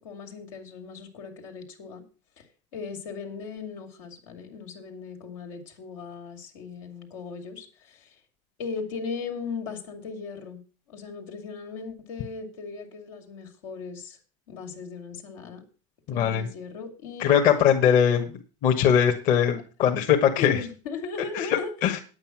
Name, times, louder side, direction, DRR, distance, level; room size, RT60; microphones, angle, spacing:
voice 1, 0.0-2.0 2.4-2.5 2.7-8.1 8.6-10.6 10.9-14.2 14.5-15.6 16.1-17.4 20.4-21.7, left 5 dB, 90° left, 3 dB, 2.8 m, -37 dB
voice 2, 16.1-16.5 17.2-18.3 18.6-20.6 21.3-22.0, left 8 dB, 55° left, 3 dB, 1.7 m, -21 dB
9.3 x 8.6 x 6.2 m, 0.37 s
supercardioid pair, 110°, 16 cm